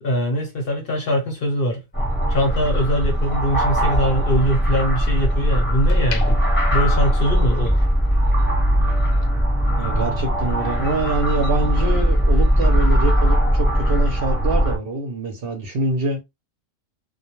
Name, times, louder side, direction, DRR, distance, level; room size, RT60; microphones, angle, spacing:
voice 1, 0.0-1.8 2.3-6.4 6.7-7.9, equal, 50° left, 0.8 m, -22 dB
sound 1, 1.1-3.4 3.8-5.2 5.7-7.8 8.1-8.4, left 6 dB, 75° left, 1.0 m, -39 dB
sound 2, 1.9-14.8, equal, 10° left, 0.8 m, -19 dB
voice 2, 9.8-16.2, right 2 dB, 55° right, 0.8 m, -25 dB
2.2 x 2.1 x 2.9 m
omnidirectional pair, 1.3 m